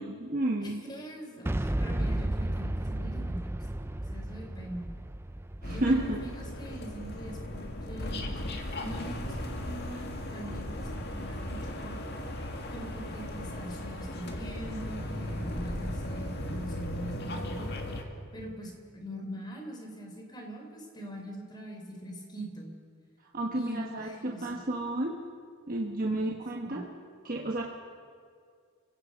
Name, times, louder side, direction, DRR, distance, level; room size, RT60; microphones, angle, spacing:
voice 1, 0.0-0.8 5.6-6.2 23.3-25.2 25.7-26.8 27.2-27.6, right 1 dB, 40° right, -1 dB, 1.3 m, -31 dB
voice 2, 0.6-3.7 4.1-4.9 5.6-8.3 8.8-12.0 12.7-17.7 18.3-22.8 23.5-24.6 26.1-26.3 26.7-26.8, right 1 dB, 20° left, 2 dB, 3.4 m, -42 dB
Boom, 1.5-7.3, right 1 dB, 10° right, 0.4 m, -33 dB
sound 1, 5.6-18.0, left 1 dB, 45° left, 2.0 m, -37 dB
29.0 x 17.0 x 5.3 m, 2.2 s
head